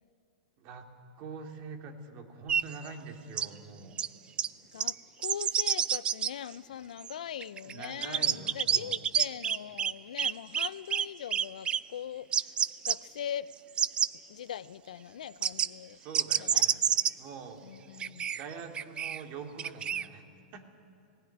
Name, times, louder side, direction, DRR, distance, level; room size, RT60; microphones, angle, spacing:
voice 1, 0.6-0.9 1.2-4.0 7.6-9.0 15.9-16.8 17.1-17.6 18.3-20.6, right 5 dB, 45° right, 2.6 m, -44 dB
sound 1, 2.5-2.6 3.4-3.5 4.0-4.1 4.4-4.5 4.8-4.9 5.2-6.3 7.0-7.1 7.4-9.9 10.2-11.1 11.3-11.8 12.3-13.0 13.5-14.1 15.4-15.7 16.1-17.1 18.0-19.2 19.6-20.1, right 8 dB, 25° right, 0.5 m, -28 dB
voice 2, 4.7-12.5 12.8-13.5 14.3-16.0 16.4-16.6 17.6-18.3, left 9 dB, 80° left, 0.6 m, -41 dB
18.5 x 16.0 x 10.0 m
hypercardioid pair, 115°, 4 cm